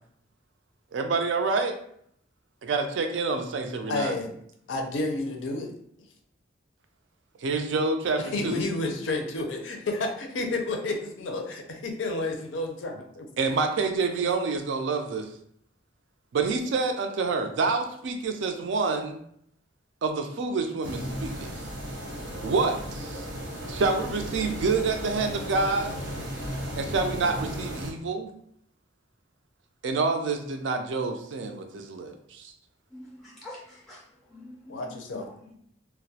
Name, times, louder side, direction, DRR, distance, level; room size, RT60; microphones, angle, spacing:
voice 1, 0.9-1.7 2.6-4.2 7.4-8.6 13.4-15.3 16.3-19.2 20.0-21.5 22.4-23.2 23.7-26.0 26.8-28.3 29.8-32.5, right 4 dB, 70° right, 5 dB, 0.4 m, -27 dB
voice 2, 3.9-4.3 4.7-5.7 6.0-6.1 8.2-13.3 34.7-35.3, left 2 dB, 90° left, 3 dB, 0.5 m, -30 dB
sound 1, 20.8-27.9, equal, 90° right, 0.9 m, -35 dB
voice 3, 32.9-34.0 34.3-35.5, left 1 dB, ahead, -4 dB, 0.4 m, -46 dB
2.2 x 2.0 x 2.6 m, 0.68 s
head